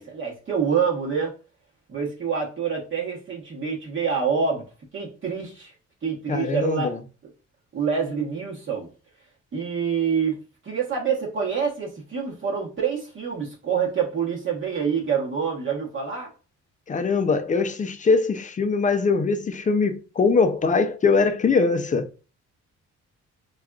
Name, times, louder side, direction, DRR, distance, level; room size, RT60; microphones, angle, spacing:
voice 1, 0.0-1.3 1.9-4.7 4.9-5.7 6.0-7.0 7.7-8.9 9.5-16.3, right 6 dB, 40° right, 1.0 m, -26 dB
voice 2, 6.3-7.0 16.9-22.1, left 4 dB, 25° left, 0.4 m, -22 dB
3.4 x 2.4 x 2.3 m
cardioid pair, 90°, 30 cm